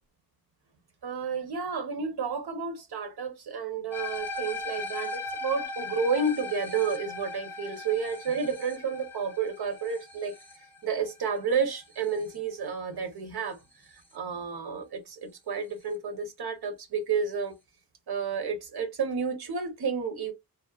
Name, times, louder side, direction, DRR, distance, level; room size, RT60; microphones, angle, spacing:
voice 1, 1.0-10.4 10.8-13.6 13.9-17.6 18.1-20.3, right 5 dB, 90° right, 0.7 m, -31 dB
sound 1, 3.9-12.3, left 3 dB, 5° left, 0.6 m, -38 dB
2.8 x 2.0 x 2.2 m
wide cardioid pair, 125°, 38 cm